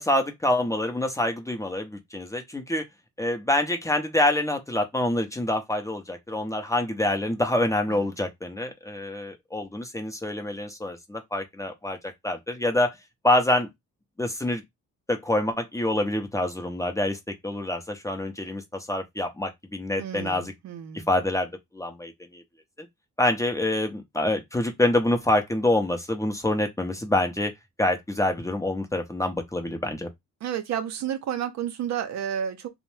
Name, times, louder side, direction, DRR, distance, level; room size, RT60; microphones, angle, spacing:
voice 1, 0.0-2.8 3.2-12.0 12.2-12.9 13.2-13.7 14.2-14.6 15.1-20.5 21.1-22.4 23.2-27.5 27.8-30.1, left 1 dB, 10° left, 0.6 m, -26 dB
voice 2, 20.0-21.1 30.4-32.7, right 9 dB, 65° right, 0.6 m, -31 dB
2.6 x 2.1 x 3.1 m
cardioid pair, 90°, 30 cm